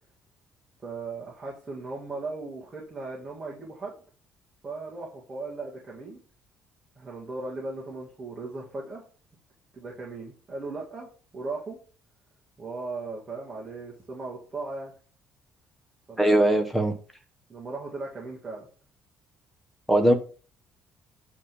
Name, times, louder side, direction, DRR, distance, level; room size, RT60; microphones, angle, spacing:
voice 1, 0.8-4.0 4.6-6.2 7.0-9.0 9.7-11.1 11.3-11.8 12.6-14.9 16.1-16.6 17.5-18.7, right 3 dB, 20° right, 2.0 m, -37 dB
voice 2, 16.2-16.9 19.9-20.1, right 1 dB, ahead, 1.1 m, -20 dB
9.3 x 3.7 x 7.0 m
cardioid pair, 165°, 3 cm